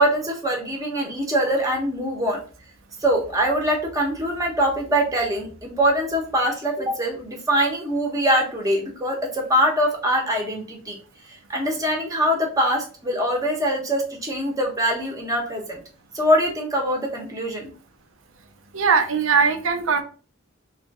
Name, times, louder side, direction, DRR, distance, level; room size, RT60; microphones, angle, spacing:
voice 1, 0.0-2.4 3.0-11.0 11.3-15.8 16.1-17.7, equal, 15° right, 0 dB, 0.9 m, -23 dB
voice 2, 18.7-20.0, right 5 dB, 65° right, 6 dB, 0.6 m, -20 dB
3.1 x 2.4 x 4.0 m, 0.39 s
head